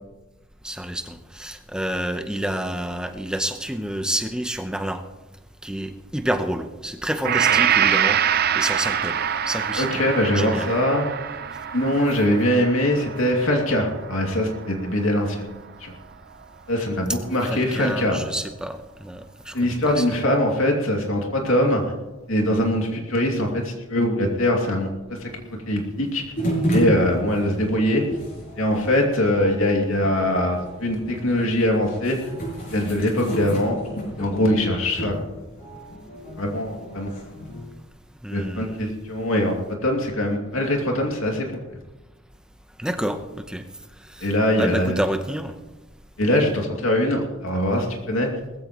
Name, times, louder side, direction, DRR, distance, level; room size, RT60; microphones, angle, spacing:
voice 1, 0.6-5.0 5.6-8.2 8.6-10.0 10.3-10.7 17.5-20.0 38.2-38.9 42.8-43.6 44.1-44.3 44.6-45.5, right 1 dB, 5° right, 0.8 m, -29 dB
Gong, 7.2-15.3, right 9 dB, 45° right, 0.6 m, -25 dB
voice 2, 9.8-11.1 11.7-15.4 15.8-15.9 16.7-18.2 19.5-21.8 22.3-24.9 25.2-25.3 25.7-26.2 26.7-28.0 28.6-32.2 32.7-33.8 34.2-35.2 36.4-37.1 38.3-41.5 44.2-45.0 46.2-48.3, left 1 dB, 70° left, 2.6 m, -22 dB
sound 1, 26.4-37.7, right 1 dB, 40° left, 6.3 m, -32 dB
20.0 x 15.0 x 3.1 m
head